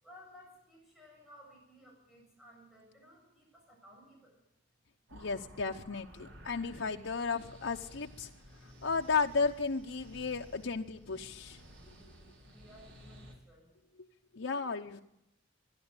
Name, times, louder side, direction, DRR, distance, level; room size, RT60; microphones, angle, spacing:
voice 1, 0.0-4.4 11.7-13.8, equal, ahead, -3 dB, 7.4 m, -58 dB
voice 2, 5.1-8.3 8.8-11.6 14.3-15.0, left 4 dB, 80° left, 2 dB, 0.9 m, -34 dB
sound 1, 5.1-13.3, equal, 85° right, 5.4 m, -54 dB
24.0 x 11.5 x 9.7 m, 0.83 s
head